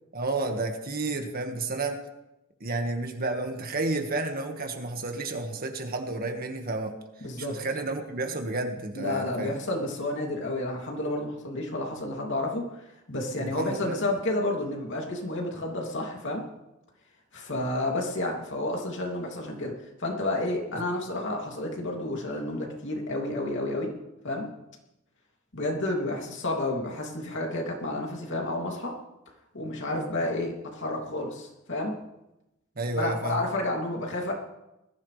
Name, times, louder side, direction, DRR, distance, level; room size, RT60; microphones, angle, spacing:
voice 1, 0.1-2.0 2.6-6.9 7.4-9.6 13.4-14.0 32.8-33.4, right 2 dB, 45° right, 4 dB, 1.8 m, -31 dB
voice 2, 7.2-7.6 8.3-8.4 8.9-12.7 13.1-16.4 17.3-19.7 20.0-23.9 24.2-24.5 25.5-29.0 29.5-31.9 33.0-34.3, left 1 dB, 65° left, 0 dB, 2.8 m, -30 dB
20.0 x 14.5 x 3.4 m, 0.94 s
head